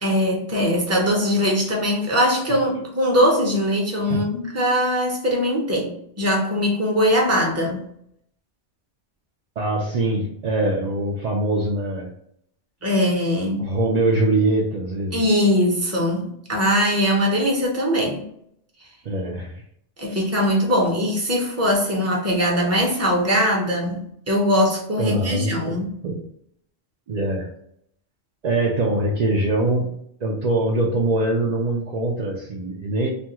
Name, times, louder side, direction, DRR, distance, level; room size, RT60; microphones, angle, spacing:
voice 1, 0.0-7.8 12.8-13.6 15.1-18.2 20.0-25.9, equal, 15° right, -2 dB, 0.6 m, -21 dB
voice 2, 9.6-12.1 13.6-15.2 19.0-19.6 20.1-20.2 25.0-26.2 27.1-27.5 28.4-33.1, right 2 dB, 75° right, -1 dB, 0.3 m, -23 dB
3.3 x 2.3 x 2.8 m, 0.71 s
omnidirectional pair, 1.3 m